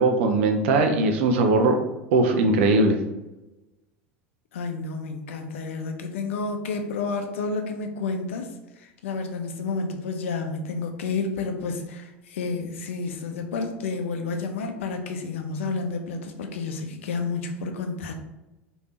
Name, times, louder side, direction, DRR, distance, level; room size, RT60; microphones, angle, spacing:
voice 1, 0.0-1.8 2.1-3.0, right 3 dB, 65° right, 5 dB, 0.5 m, -20 dB
voice 2, 4.5-18.1, left 4 dB, 75° left, 5 dB, 0.5 m, -30 dB
3.3 x 2.6 x 3.1 m, 1.0 s
hypercardioid pair, 80°, 7 cm